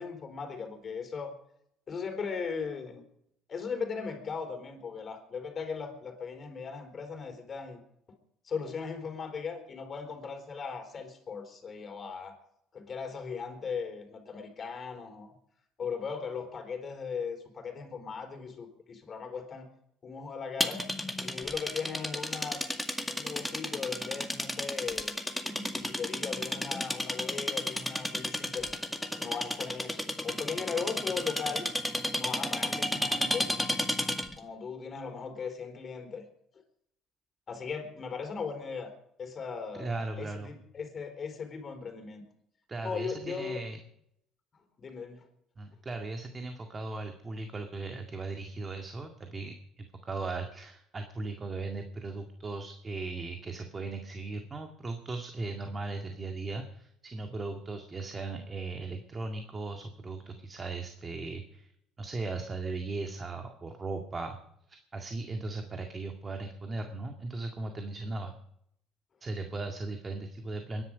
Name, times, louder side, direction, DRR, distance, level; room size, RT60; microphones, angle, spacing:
voice 1, 0.0-1.3 1.9-3.0 3.5-7.8 8.1-8.2 8.4-12.4 12.7-15.3 15.8-19.7 20.0-20.8 21.2-22.6 23.1-25.1 25.7-28.7 29.2-31.7 32.2-33.5 34.4-36.2 37.5-38.9 39.2-42.2 42.8-43.6 44.5-45.3, left 5 dB, 40° left, 5 dB, 4.2 m, -38 dB
sound 1, 20.6-34.4, equal, ahead, 2.0 m, -33 dB
voice 2, 39.8-40.6 42.7-43.8 45.6-61.7 62.0-64.4 64.7-68.3 69.2-70.8, right 3 dB, 30° right, 4 dB, 2.0 m, -38 dB
23.0 x 11.0 x 5.2 m, 0.76 s
supercardioid pair, 75°, 0 cm